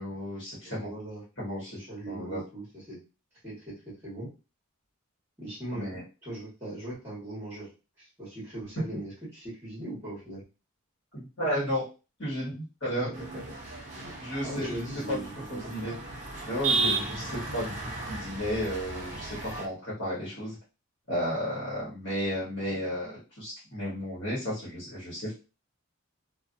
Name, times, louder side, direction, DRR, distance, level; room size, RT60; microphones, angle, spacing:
voice 1, 0.0-0.9 1.4-2.4 5.7-6.0 11.1-11.8 12.2-13.1 14.2-14.8 15.1-15.2 15.5-15.9 16.5-17.8 18.1-20.6 21.1-25.3, equal, 55° left, -9 dB, 1.3 m, -33 dB
voice 2, 0.6-1.2 1.7-3.0 3.4-4.3 5.4-5.9 6.2-7.7 8.0-10.4 12.9-14.1 14.4-15.9, right 1 dB, 10° right, -7 dB, 1.2 m, -40 dB
sound 1, 13.1-19.7, right 3 dB, 35° right, 0.5 m, -34 dB
2.5 x 2.3 x 2.5 m, 0.31 s
head